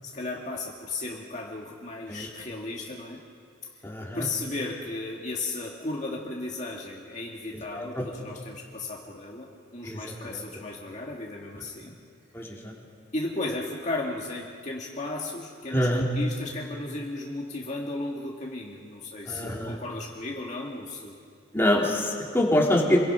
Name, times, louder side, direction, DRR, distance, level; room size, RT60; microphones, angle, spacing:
voice 1, 0.0-3.2 4.1-11.9 13.1-21.2, left 2 dB, 35° left, -1 dB, 2.0 m, -35 dB
voice 2, 3.8-4.3 7.7-8.0 9.8-10.4 12.3-12.7 15.7-16.1 19.3-19.8 21.5-23.0, left 1 dB, 10° left, -2 dB, 2.9 m, -25 dB
28.0 x 23.0 x 5.6 m, 2.2 s
head